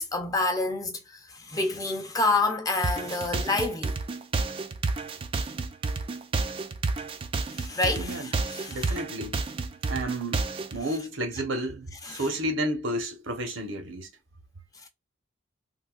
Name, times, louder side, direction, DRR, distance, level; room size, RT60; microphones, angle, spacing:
voice 1, 0.0-4.0 7.5-9.0 12.0-12.3, left 3 dB, 20° left, 0.6 m, -28 dB
sound 1, 2.8-10.8, right 3 dB, 25° right, 0.3 m, -30 dB
voice 2, 7.9-8.3 8.7-9.4 9.9-10.4 10.7-14.1, right 1 dB, 75° right, 1.0 m, -31 dB
3.5 x 2.7 x 2.4 m
head